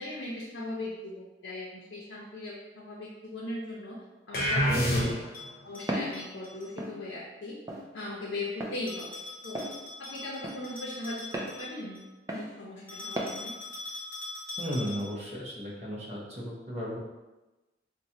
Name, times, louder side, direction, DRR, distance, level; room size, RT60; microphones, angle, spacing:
voice 1, 0.0-4.0 4.3-5.2 5.6-7.6 7.9-9.6 10.0-11.2 11.5-12.0 12.3-13.5, left 2 dB, 90° left, -5 dB, 0.6 m, -39 dB
sound 1, 4.3-5.5, equal, 55° left, 0.8 m, -27 dB
voice 2, 4.7-5.1 14.6-17.0, equal, 35° right, -4 dB, 0.7 m, -33 dB
Bell, 5.0-6.7 8.9-12.1 12.9-15.3, left 3 dB, 10° left, 1.0 m, -43 dB
Walk footsteps, 5.9-6.2 6.8-6.9 7.7-7.9 8.6-8.8 9.5-9.7 10.4-10.6 11.3-11.5 12.3-12.5 13.2-13.3, right 1 dB, 20° right, 0.3 m, -34 dB
4.1 x 2.2 x 2.7 m, 1.1 s
head